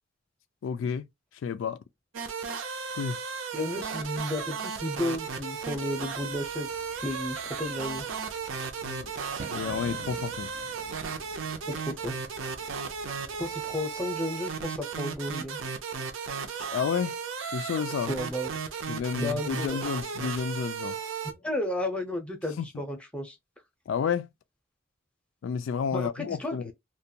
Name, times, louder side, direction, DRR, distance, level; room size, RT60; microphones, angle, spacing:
voice 1, 0.6-1.0 1.4-1.8 2.9-3.2 8.8-9.1 9.5-10.5 16.6-17.2 17.5-18.1 18.9-21.0 22.6-22.7 23.9-24.3 25.4-26.7, left 6 dB, 85° left, 0.3 m, -31 dB
sound 1, 2.1-21.3, right 6 dB, 85° right, 0.6 m, -35 dB
voice 2, 3.5-6.7 7.0-8.1 11.7-12.2 13.4-15.6 18.1-18.6 19.2-19.8 21.2-23.4 25.9-26.7, left 1 dB, 5° left, 0.6 m, -33 dB
Bird / Fireworks, 5.4-14.6, right 2 dB, 40° right, 0.6 m, -49 dB
2.4 x 2.2 x 2.7 m
head